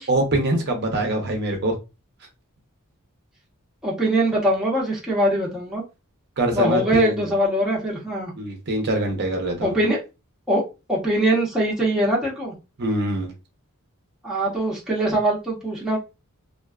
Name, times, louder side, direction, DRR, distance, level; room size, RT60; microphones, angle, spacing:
voice 1, 0.1-1.8 6.4-7.2 8.4-9.8 12.8-13.3, right 1 dB, 50° right, 2 dB, 0.6 m, -23 dB
voice 2, 3.8-5.8 6.5-8.3 9.6-10.0 10.5-10.6 10.9-12.5 14.2-16.0, right 1 dB, 5° right, -5 dB, 0.8 m, -22 dB
2.4 x 2.3 x 2.3 m, 0.27 s
head